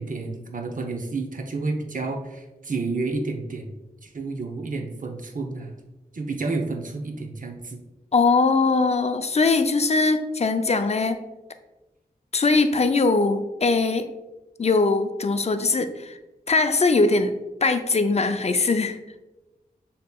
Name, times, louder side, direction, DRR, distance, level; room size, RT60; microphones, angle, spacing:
voice 1, 0.0-3.7 4.0-5.7 6.1-7.8, right 3 dB, 55° right, 3 dB, 0.6 m, -30 dB
voice 2, 8.1-11.2 12.3-14.1 14.6-16.2 16.5-17.3 17.6-19.0, left 3 dB, 40° left, 9 dB, 0.4 m, -21 dB
6.6 x 2.9 x 2.3 m, 1.0 s
cardioid pair, 45°, 16 cm